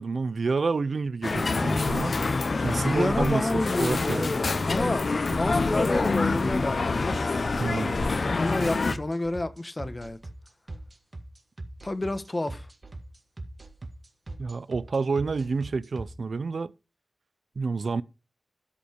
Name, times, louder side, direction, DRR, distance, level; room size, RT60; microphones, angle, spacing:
voice 1, 0.0-2.1 2.6-3.5 3.8-4.3 7.6-8.0 14.4-16.7 17.6-18.0, right 4 dB, 85° right, 0.5 m, -28 dB
sound 1, 1.2-8.9, left 3 dB, 75° left, 0.8 m, -26 dB
sound 2, 1.7-16.0, right 2 dB, 45° right, 2.0 m, -40 dB
voice 2, 2.7-6.9 8.2-10.2 11.8-12.7, left 2 dB, 35° left, 1.3 m, -29 dB
12.5 x 5.2 x 5.1 m
wide cardioid pair, 65°, 0 cm